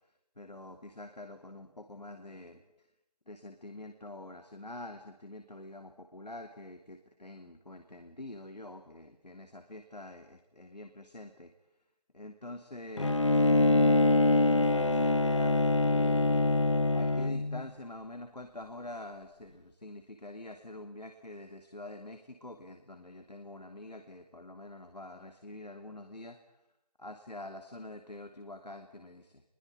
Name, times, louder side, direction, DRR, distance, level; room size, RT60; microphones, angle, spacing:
voice 1, 0.4-2.6 3.3-11.5 12.1-16.5 16.9-26.4 27.0-29.4, left 1 dB, 90° left, 6 dB, 2.9 m, -46 dB
Bowed string instrument, 13.0-17.6, left 2 dB, 45° left, 0.9 m, -24 dB
23.5 x 22.5 x 9.7 m, 0.82 s
figure-of-eight pair, 175°, 21 cm